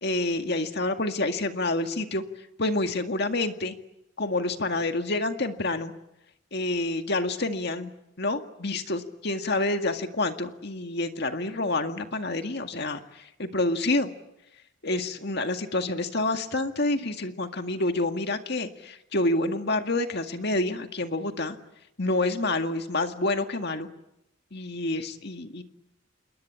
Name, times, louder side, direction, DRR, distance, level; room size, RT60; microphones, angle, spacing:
voice 1, 0.0-3.8 4.2-5.9 6.5-7.9 8.2-14.1 14.8-21.6 22.0-23.9 24.5-25.6, left 2 dB, 50° left, 6 dB, 2.0 m, -28 dB
28.0 x 22.0 x 8.7 m, 0.83 s
head